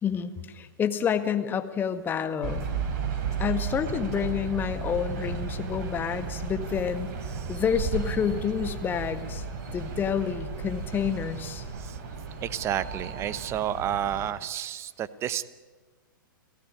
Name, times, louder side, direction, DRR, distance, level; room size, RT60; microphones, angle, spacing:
voice 1, 0.0-2.7 3.4-7.1 7.5-9.4 9.7-11.7, left 7 dB, 20° left, 9 dB, 1.7 m, -29 dB
sound 1, 2.4-14.3, right 5 dB, 45° right, 4.4 m, -34 dB
voice 2, 7.2-7.6 11.8-12.0 12.4-15.5, right 10 dB, 25° right, 17 dB, 1.0 m, -31 dB
29.5 x 16.0 x 9.8 m, 1.4 s
figure-of-eight pair, 110°, 11 cm